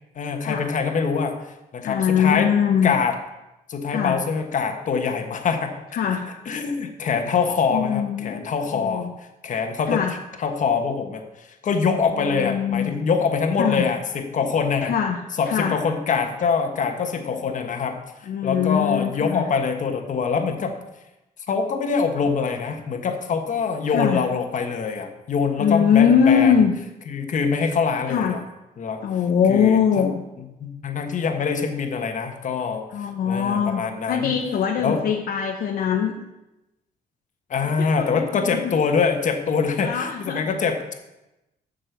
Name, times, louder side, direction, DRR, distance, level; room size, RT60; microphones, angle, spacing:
voice 1, 0.1-2.5 2.8-3.1 3.7-5.7 6.5-9.1 9.4-10.0 10.4-14.9 15.4-18.0 18.4-20.8 21.5-26.6 27.1-28.4 28.8-29.0 29.5-30.0 30.6-34.3 34.8-35.0 37.5-40.9, left 5 dB, 55° left, 5 dB, 1.3 m, -24 dB
voice 2, 1.8-2.9 3.9-4.2 5.9-6.3 7.7-8.4 8.7-9.1 9.9-10.2 12.1-13.0 13.6-13.9 14.9-15.2 15.5-15.8 18.2-19.5 23.9-24.2 25.6-26.7 28.1-28.4 29.0-30.2 32.9-33.8 34.1-36.1 37.6-38.7 39.8-40.5, left 7 dB, 70° left, 2 dB, 0.9 m, -22 dB
7.7 x 6.7 x 6.9 m, 0.96 s
cardioid pair, 115°, 16 cm